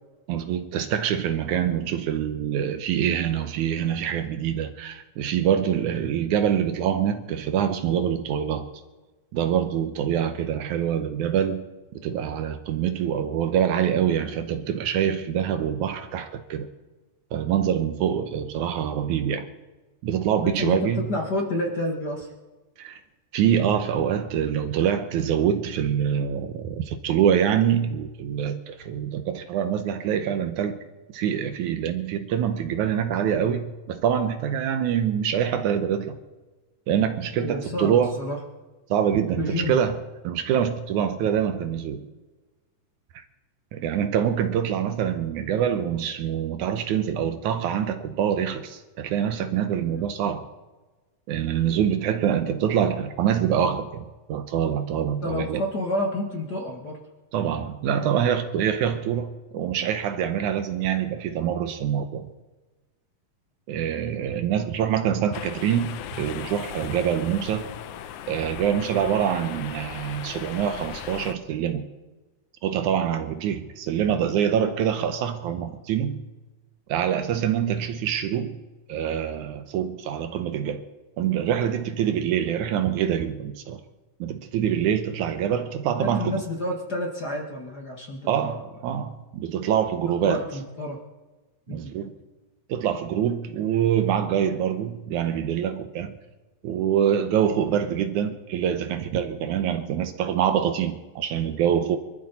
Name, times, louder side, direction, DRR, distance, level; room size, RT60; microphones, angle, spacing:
voice 1, 0.3-8.7 9.3-11.7 12.0-16.7 17.3-19.5 20.0-21.1 22.8-23.0 23.3-30.8 31.1-36.2 36.9-38.2 38.9-42.1 43.7-50.5 51.3-55.6 57.3-62.3 63.7-67.7 68.3-71.9 72.6-76.2 76.9-78.6 78.9-80.8 81.2-83.8 84.2-86.4 88.3-90.5 91.7-92.1 92.7-96.2 96.6-102.0, right 9 dB, 75° right, 9 dB, 2.1 m, -25 dB
voice 2, 20.4-20.8 21.1-22.3 23.9-24.0 37.4-38.4 39.4-39.8 49.8-50.0 55.2-57.0 86.0-88.6 88.9-89.0 90.0-91.0 91.7-91.9, left 1 dB, 40° left, 0 dB, 1.6 m, -30 dB
sound 1, 65.3-71.4, left 10 dB, 75° left, 2.1 m, -38 dB
24.0 x 13.0 x 4.1 m, 1.2 s
omnidirectional pair, 3.8 m